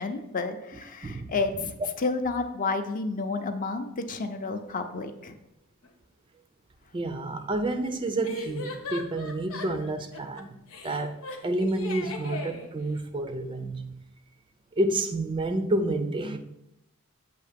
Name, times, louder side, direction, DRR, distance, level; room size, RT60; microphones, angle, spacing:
voice 1, 0.0-5.4, left 3 dB, 35° left, 0.5 m, -31 dB
voice 2, 1.0-1.3 6.9-10.6 10.8-14.0 14.8-16.4, right 2 dB, 20° right, 0.4 m, -29 dB
sound 1, 5.8-5.9 8.2-10.4 10.7-12.7, left 3 dB, 70° left, 0.9 m, -37 dB
7.7 x 2.8 x 5.0 m
head